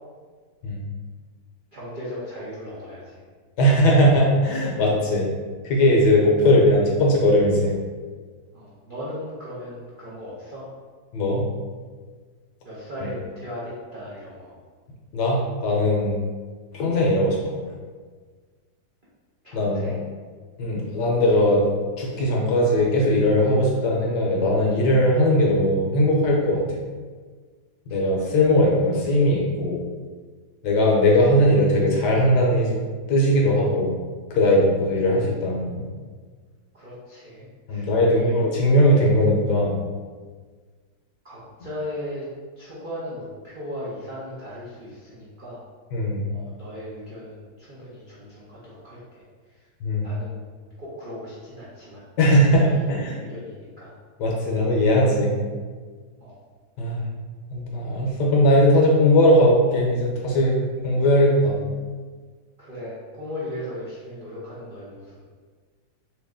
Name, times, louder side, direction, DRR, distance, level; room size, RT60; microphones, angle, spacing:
voice 1, 1.7-3.2 6.5-6.6 8.5-10.7 12.6-14.5 19.4-20.0 27.9-28.0 36.7-38.3 41.2-42.2 42.6-45.6 46.3-49.2 49.5-49.7 50.0-50.4 50.8-52.0 52.6-53.9 54.4-54.9 56.2-56.4 62.6-65.2, left 1 dB, 65° right, -9 dB, 0.5 m, -37 dB
voice 2, 3.6-5.3 5.6-7.8 11.1-11.5 15.1-16.2 16.7-17.6 19.5-19.8 20.6-21.6 22.0-26.7 27.9-29.8 30.6-32.8 33.1-33.9 34.3-35.8 37.7-39.8 45.9-46.2 49.8-50.1 52.2-53.2 54.2-55.3 56.8-57.0 57.5-61.6, left 1 dB, 70° left, -1 dB, 1.2 m, -19 dB
3.2 x 2.9 x 3.5 m, 1.5 s
omnidirectional pair, 2.0 m